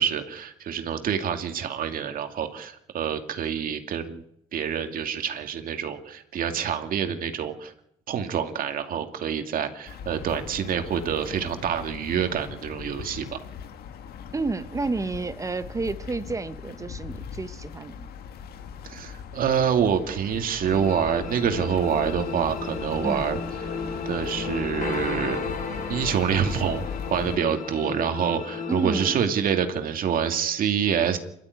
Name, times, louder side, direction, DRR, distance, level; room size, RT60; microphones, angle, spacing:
voice 1, 0.0-4.2 4.5-7.7 8.1-13.4 18.8-23.8 24.1-25.4 25.9-31.2, right 8 dB, 55° right, 2.3 m, -27 dB
sound 1, 9.9-27.4, left 7 dB, 65° left, 1.9 m, -39 dB
voice 2, 14.3-17.9 23.0-23.2 28.7-29.2, right 3 dB, 20° right, 1.1 m, -30 dB
sound 2, 20.6-29.2, left 4 dB, 50° left, 3.8 m, -34 dB
25.5 x 12.5 x 9.6 m
cardioid pair, 110°, 17 cm